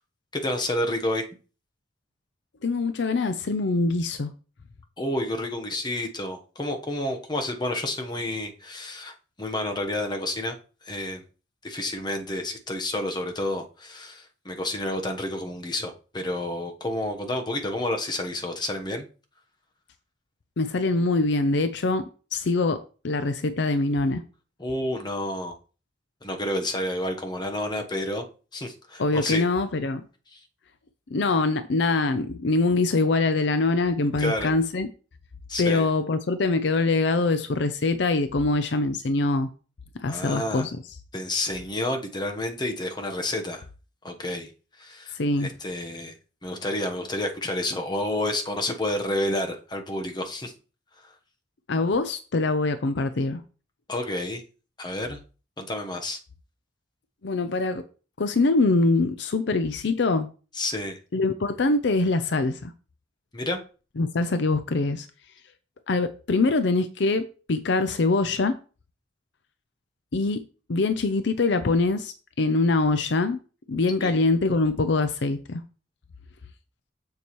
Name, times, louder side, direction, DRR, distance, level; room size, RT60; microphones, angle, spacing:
voice 1, 0.3-1.3 5.0-10.6 10.8-11.2 11.6-19.1 24.6-25.5 26.2-28.2 28.5-29.4 30.3-30.4 34.2-34.5 35.5-35.9 40.1-40.7 41.1-43.6 44.0-44.5 44.8-46.1 46.4-50.5 51.0-51.1 53.9-54.4 54.8-55.2 55.6-56.2 60.5-61.0 63.3-63.6 74.0-74.1, left 1 dB, 25° left, 1.1 m, -30 dB
voice 2, 2.6-4.3 20.6-22.0 22.3-24.2 29.0-30.0 31.1-34.9 35.6-39.5 40.0-40.7 45.1-45.5 51.7-53.4 57.2-57.8 58.2-60.3 61.1-62.7 64.0-65.1 65.9-68.6 70.1-70.4 70.7-73.4 73.7-75.6, left 3 dB, 65° left, 0.6 m, -24 dB
7.0 x 6.8 x 3.1 m
head